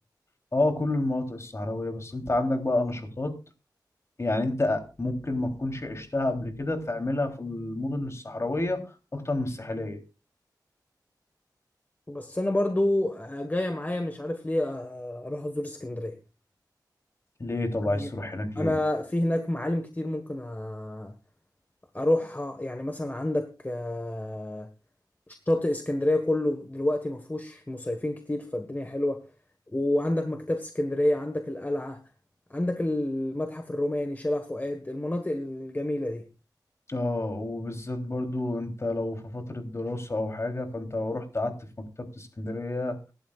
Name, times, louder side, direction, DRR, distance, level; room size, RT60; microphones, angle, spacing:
voice 1, 0.5-3.3 4.2-10.0 17.4-18.7 36.9-41.6 42.2-43.0, left 2 dB, 40° left, 3.4 m, -29 dB
voice 2, 12.1-16.2 17.8-18.1 18.5-21.1 21.9-24.7 25.3-29.3 29.7-32.0 32.5-36.3, left 1 dB, 25° left, 1.5 m, -29 dB
24.5 x 11.5 x 2.5 m
wide cardioid pair, 75°, 7 cm